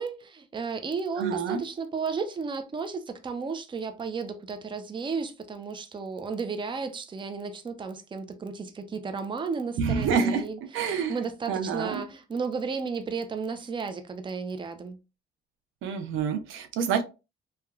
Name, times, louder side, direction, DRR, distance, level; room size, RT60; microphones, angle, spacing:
voice 1, 0.0-15.0, right 5 dB, 25° right, 0.5 m, -33 dB
voice 2, 1.2-1.6 9.8-10.4 10.7-11.1 11.5-12.0 15.8-17.0, right 6 dB, 85° right, 0.5 m, -27 dB
3.0 x 2.3 x 2.2 m
cardioid pair, 90°, 20 cm